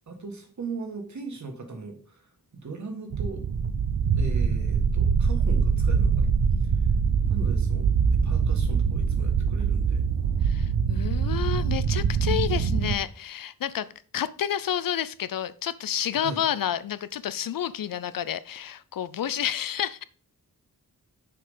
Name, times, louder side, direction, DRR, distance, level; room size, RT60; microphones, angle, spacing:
voice 1, 0.1-3.4 4.1-6.3 7.3-10.0 16.1-16.4, right 4 dB, 50° right, 1.8 m, -38 dB
sound 1, 3.1-13.0, right 6 dB, 75° right, 0.8 m, -23 dB
voice 2, 10.4-13.9 14.1-20.0, left 10 dB, 70° left, 0.5 m, -30 dB
6.8 x 5.1 x 5.5 m
wide cardioid pair, 170°, 35 cm